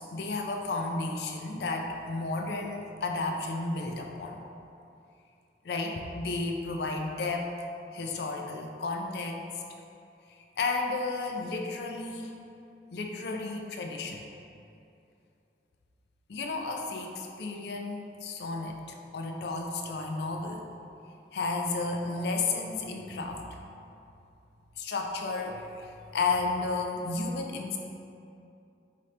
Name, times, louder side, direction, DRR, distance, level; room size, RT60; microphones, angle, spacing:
voice 1, 0.0-4.4 5.6-7.5 7.9-9.4 10.3-12.3 12.9-14.2 16.3-20.7 21.3-23.6 24.8-27.8, left 3 dB, 70° left, 2 dB, 0.4 m, -33 dB
5.0 x 2.7 x 3.2 m, 2.7 s
head